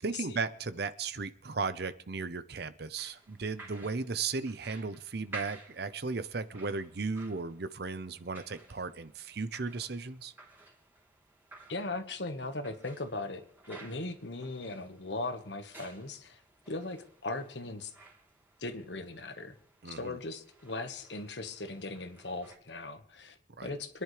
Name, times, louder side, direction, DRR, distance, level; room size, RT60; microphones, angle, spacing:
voice 1, 0.0-10.3 19.8-20.2 23.6-23.8, right 4 dB, 60° right, 13 dB, 0.8 m, -36 dB
sound 1, 3.0-22.6, right 2 dB, 10° right, 3.3 m, -54 dB
voice 2, 11.7-13.4 13.7-16.4 16.7-17.9 18.6-19.5 19.8-24.0, left 2 dB, 75° left, 8 dB, 1.4 m, -38 dB
25.5 x 10.5 x 3.3 m, 0.73 s
head